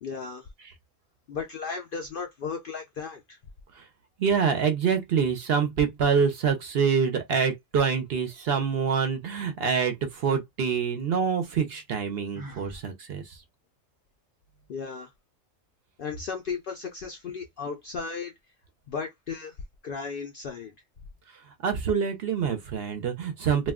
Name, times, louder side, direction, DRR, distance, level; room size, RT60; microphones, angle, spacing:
voice 1, 0.0-0.5 1.3-3.4 14.7-15.1 16.0-18.3 18.9-19.6 19.8-20.7, left 5 dB, 65° left, 0.5 m, -35 dB
voice 2, 4.2-13.4 21.6-23.7, right 6 dB, 60° right, 0.7 m, -26 dB
Sigh, 12.3-12.9, right 2 dB, 30° right, 0.4 m, -42 dB
2.3 x 2.2 x 3.5 m
omnidirectional pair, 1.3 m